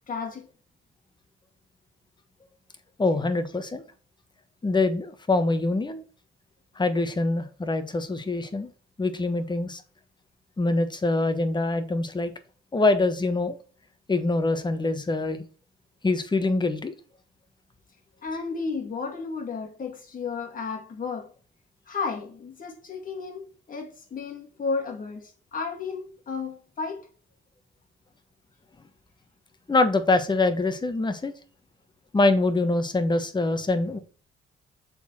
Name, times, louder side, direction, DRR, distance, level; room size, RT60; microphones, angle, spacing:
voice 1, 0.1-0.5 18.2-21.3 21.9-27.1, left 4 dB, 45° left, 2.7 m, -33 dB
voice 2, 3.0-3.8 4.6-6.0 6.8-8.7 9.0-9.8 10.6-12.3 12.7-13.5 14.1-15.4 16.0-16.9 29.7-31.3 32.1-34.0, left 2 dB, 20° left, 1.3 m, -24 dB
6.9 x 4.3 x 4.4 m
cardioid pair, 90°, 20 cm